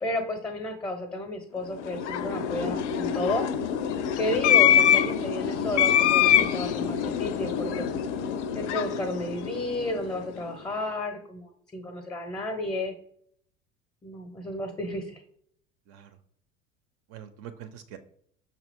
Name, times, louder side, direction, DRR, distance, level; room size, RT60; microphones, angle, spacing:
voice 1, 0.0-3.5 4.2-8.0 8.5-12.9 14.0-15.2, left 1 dB, 10° left, 4 dB, 0.6 m, -32 dB
sound 1, 1.7-10.2, left 9 dB, 60° left, 0.5 m, -25 dB
voice 2, 4.6-5.0 15.9-16.2 17.1-18.0, right 9 dB, 35° right, 10 dB, 0.4 m, -44 dB
5.8 x 2.4 x 3.4 m, 0.66 s
figure-of-eight pair, 70°, 40 cm